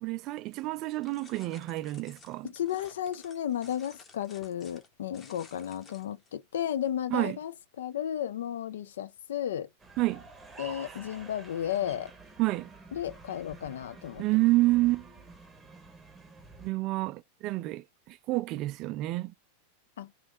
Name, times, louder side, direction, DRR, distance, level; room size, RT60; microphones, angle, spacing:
voice 1, 0.0-2.5 7.1-7.4 10.0-10.2 12.4-12.7 14.2-15.1 16.6-19.3, right 19 dB, 40° right, 0.3 m, -28 dB
sound 1, 1.0-6.3, left 4 dB, 20° left, 0.8 m, -55 dB
voice 2, 2.4-9.7 10.6-12.1 12.9-14.3 20.0-20.1, left 10 dB, 60° left, 0.4 m, -34 dB
sound 2, 9.8-16.7, right 4 dB, 10° right, 0.8 m, -49 dB
3.1 x 2.6 x 3.7 m
figure-of-eight pair, 90°, 0 cm